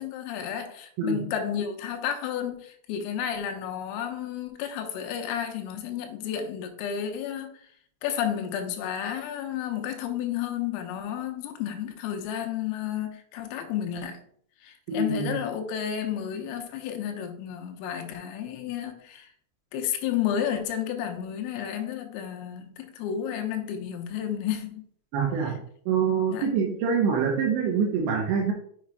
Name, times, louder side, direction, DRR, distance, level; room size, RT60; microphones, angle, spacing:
voice 1, 0.0-7.5 8.0-14.2 14.6-19.3 19.7-24.8 26.3-26.5, left 9 dB, 85° left, 3.4 m, -31 dB
voice 2, 14.9-15.3 25.1-25.6 25.9-28.5, right 6 dB, 80° right, 2.7 m, -25 dB
7.3 x 6.5 x 2.4 m
omnidirectional pair, 5.8 m